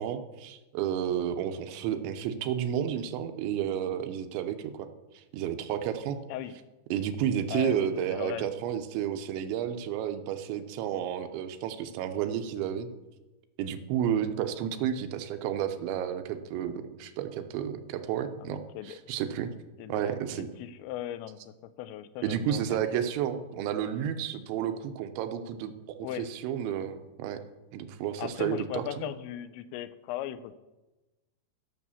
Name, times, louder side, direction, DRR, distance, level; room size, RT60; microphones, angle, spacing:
voice 1, 0.0-4.9 5.3-6.2 6.9-12.9 13.6-19.5 19.9-20.5 22.2-27.4 27.7-29.1, right 9 dB, 85° right, 7 dB, 3.2 m, -31 dB
voice 2, 7.5-8.5 18.4-19.0 19.8-22.8 23.8-24.1 26.0-26.3 28.2-30.5, left 12 dB, 90° left, 13 dB, 2.9 m, -38 dB
13.5 x 6.3 x 7.0 m, 1.1 s
omnidirectional pair, 5.2 m